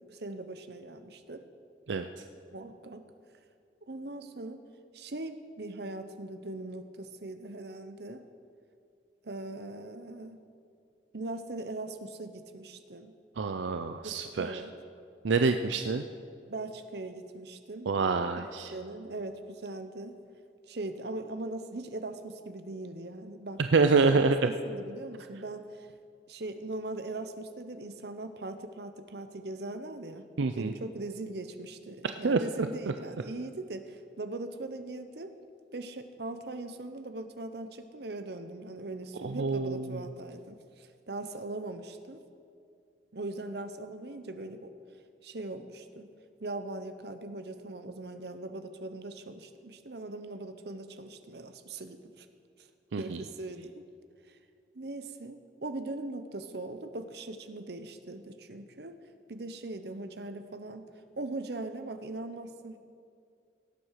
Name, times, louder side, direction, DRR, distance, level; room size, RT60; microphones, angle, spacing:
voice 1, 0.0-1.5 2.5-3.1 3.8-4.7 4.9-8.2 9.2-10.4 11.1-13.1 14.0-14.7 16.5-17.9 18.3-20.2 20.7-23.8 24.1-25.9 26.3-30.3 30.6-35.3 35.7-42.2 43.1-44.7 45.2-46.1 46.4-52.3 52.6-52.7 53.0-53.8 54.3-54.4 54.7-59.0 59.3-60.8 61.2-62.8, right 2 dB, 60° right, 9 dB, 0.9 m, -40 dB
voice 2, 13.4-14.6 15.2-16.0 17.9-18.7 23.7-24.4 30.4-30.7 32.2-32.4 39.2-40.0 52.9-53.2, right 4 dB, 80° right, 8 dB, 0.5 m, -26 dB
17.0 x 7.9 x 6.6 m, 2.3 s
head